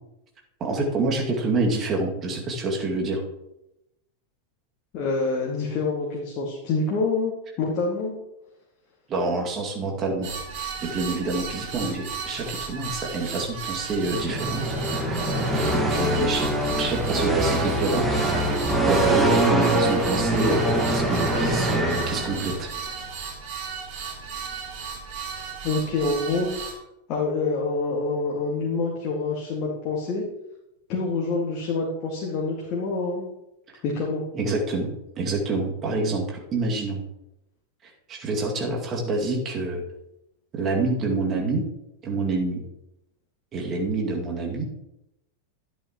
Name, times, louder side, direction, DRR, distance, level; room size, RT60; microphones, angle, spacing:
voice 1, 0.6-3.2 9.1-10.3 10.8-15.2 15.7-16.5 16.8-18.5 18.9-22.7 34.3-37.0 37.8-39.8 40.5-41.6 42.0-42.6 43.5-44.7, right 2 dB, 30° right, -1 dB, 2.3 m, -27 dB
voice 2, 4.9-7.3 7.6-8.1 25.6-26.5 27.1-30.3 30.9-33.3 33.8-34.2, left 3 dB, 40° left, -3 dB, 2.0 m, -26 dB
sound 1, 10.2-26.7, right 6 dB, 50° right, 4.0 m, -35 dB
sound 2, 14.0-22.7, right 1 dB, 5° right, 1.8 m, -24 dB
12.5 x 10.0 x 3.1 m, 0.87 s
figure-of-eight pair, 90°, 0 cm